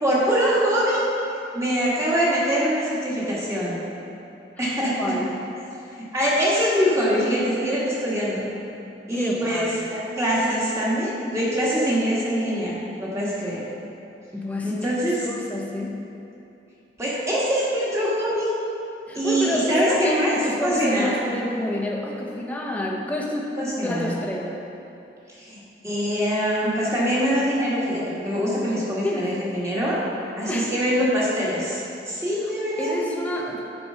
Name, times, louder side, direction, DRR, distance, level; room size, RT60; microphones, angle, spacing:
voice 1, 0.0-1.0 1.5-3.8 4.6-5.1 5.9-8.5 9.1-13.6 14.6-15.3 17.0-18.5 19.1-21.1 23.6-24.2 25.4-30.0 30.4-32.9, equal, 15° right, -7 dB, 1.6 m, -24 dB
voice 2, 4.6-5.4 9.1-9.9 14.3-16.1 19.1-24.7 29.0-29.6 30.5-30.8 32.8-33.6, left 1 dB, 10° left, -2 dB, 0.7 m, -29 dB
8.4 x 4.6 x 5.6 m, 2.9 s
head